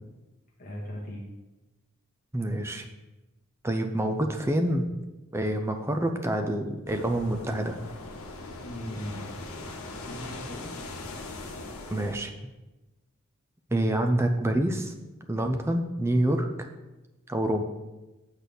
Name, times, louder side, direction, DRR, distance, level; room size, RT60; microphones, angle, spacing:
voice 1, 0.6-1.3 8.6-9.4 10.0-10.7, equal, 35° left, -3 dB, 1.1 m, -38 dB
voice 2, 2.3-2.9 3.6-4.9 5.3-7.8 11.9-12.3 13.7-14.9 15.3-16.7 17.3-17.6, right 1 dB, 10° right, 5 dB, 0.5 m, -27 dB
sound 1, 6.9-12.1, left 2 dB, 75° left, 1.2 m, -40 dB
8.0 x 4.1 x 6.8 m, 1.1 s
head